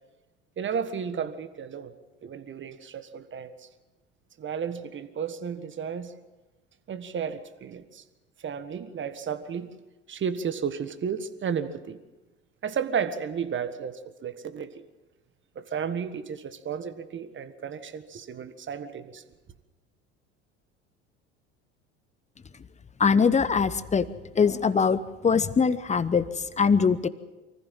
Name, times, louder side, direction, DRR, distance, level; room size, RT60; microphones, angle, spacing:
voice 1, 0.6-1.9 2.2-3.7 4.4-6.1 6.9-8.0 8.4-9.7 10.1-12.0 12.6-14.8 15.5-19.2, right 7 dB, 35° right, 11 dB, 1.6 m, -33 dB
voice 2, 23.0-24.1 24.3-27.1, left 5 dB, 20° left, 15 dB, 1.0 m, -22 dB
24.0 x 15.0 x 7.6 m, 1.1 s
hypercardioid pair, 75°, 34 cm